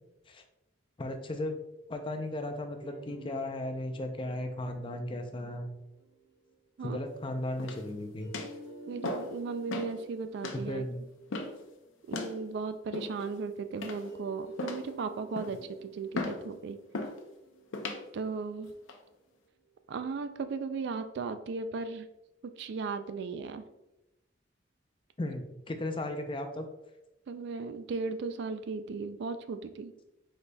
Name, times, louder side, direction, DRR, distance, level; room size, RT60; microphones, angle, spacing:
voice 1, 1.0-1.6 1.9-5.7 6.8-8.3 10.5-11.0 25.2-26.7, left 1 dB, 25° left, 6 dB, 0.4 m, -36 dB
sound 1, 2.8-6.6 8.2-12.7 14.1-19.3, right 2 dB, 75° right, 1.1 m, -52 dB
sound 2, 7.6-7.9 8.3-8.6 9.0-9.4 9.7-9.9 10.4-10.6 11.3-11.6 12.1-12.4 12.9-13.3 13.8-14.2 14.6-14.9 15.3-15.6 16.1-16.4 16.9-17.2 17.7-18.0 18.6-19.0, left 2 dB, 90° left, 0.6 m, -37 dB
voice 2, 8.9-10.8 12.1-16.8 18.1-18.7 19.9-22.1 22.4-23.6 27.3-29.9, right 4 dB, 60° right, 10 dB, 0.3 m, -36 dB
5.0 x 4.0 x 2.2 m, 0.94 s
head